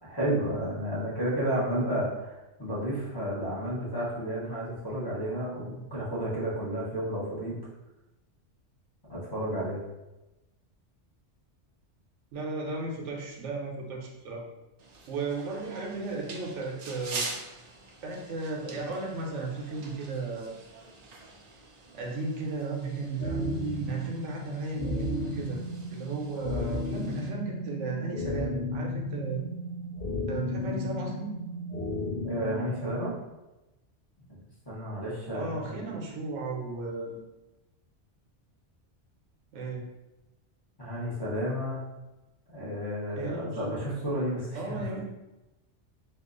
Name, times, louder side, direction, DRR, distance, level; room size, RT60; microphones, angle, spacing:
voice 1, 0.0-7.5 9.1-9.8 32.2-33.1 34.3-34.4 34.7-35.6 40.8-41.8 42.5-44.8, equal, 20° left, -9 dB, 0.9 m, -32 dB
voice 2, 12.3-14.4 15.1-17.2 18.0-20.5 21.9-25.6 25.9-29.4 30.3-31.4 35.3-37.2 39.5-39.9 43.2-43.9 44.5-45.0, right 3 dB, 85° right, 0 dB, 1.0 m, -35 dB
sound 1, 14.8-27.3, right 3 dB, 55° right, 0.4 m, -45 dB
sound 2, 23.2-33.2, left 2 dB, 60° left, 0.8 m, -34 dB
2.8 x 2.4 x 3.7 m, 1.0 s
omnidirectional pair, 1.2 m